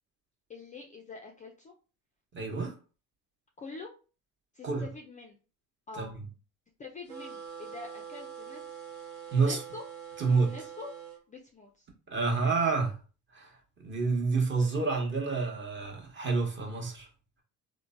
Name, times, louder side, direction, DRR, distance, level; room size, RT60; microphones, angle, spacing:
voice 1, 0.5-1.7 3.6-3.9 4.5-5.4 5.9-6.2 6.8-8.6 9.4-9.8 10.4-10.9 11.3-11.9, left 3 dB, 20° left, 0.3 m, -45 dB
voice 2, 2.3-2.7 4.6-4.9 5.9-6.1 9.3-9.6 10.2-10.5 12.1-12.9 13.3-13.5 13.8-17.1, right 4 dB, 30° right, 0.9 m, -28 dB
sound 1, 7.1-11.2, right 7 dB, 65° right, 0.9 m, -44 dB
3.1 x 2.1 x 2.4 m
supercardioid pair, 100°, 38 cm